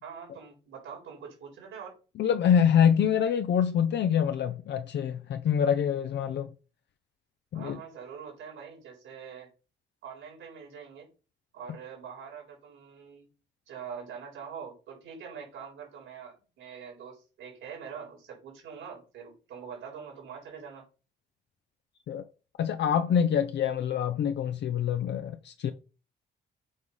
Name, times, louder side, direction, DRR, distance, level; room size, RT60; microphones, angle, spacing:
voice 1, 0.0-2.0 7.5-9.5 10.0-11.1 11.5-13.3 13.7-20.8, right 7 dB, 85° right, 4.2 m, -44 dB
voice 2, 2.2-6.5 7.5-7.8 22.1-22.2 22.6-25.7, left 8 dB, 60° left, 0.6 m, -25 dB
7.4 x 3.2 x 5.5 m
cardioid pair, 90°, 20 cm